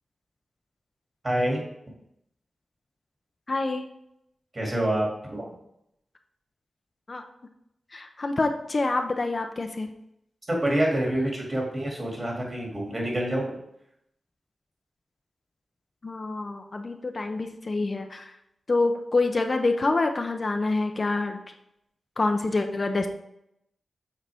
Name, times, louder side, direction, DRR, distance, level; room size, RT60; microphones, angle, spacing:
voice 1, 1.2-1.6 4.5-5.5 10.5-13.6, right 1 dB, 35° right, -2 dB, 2.4 m, -27 dB
voice 2, 3.5-3.9 7.1-7.2 7.9-9.9 16.0-18.3 18.7-21.4 22.2-23.1, left 3 dB, 45° left, 5 dB, 0.5 m, -26 dB
7.4 x 4.1 x 3.4 m, 0.79 s
wide cardioid pair, 75°, 0 cm